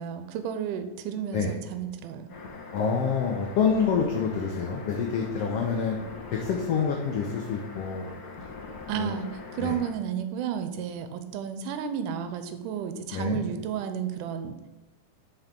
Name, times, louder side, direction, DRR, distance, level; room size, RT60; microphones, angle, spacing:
voice 1, 0.0-2.3 8.9-14.6, right 8 dB, 85° right, 8 dB, 2.2 m, -32 dB
sound 1, 2.3-9.9, left 3 dB, 55° left, 1.0 m, -42 dB
voice 2, 2.7-6.0 6.3-8.1 8.9-9.1 9.6-9.8 13.1-13.4, left 6 dB, 85° left, 2 dB, 1.3 m, -27 dB
5.8 x 4.7 x 5.2 m, 1.1 s
omnidirectional pair, 3.7 m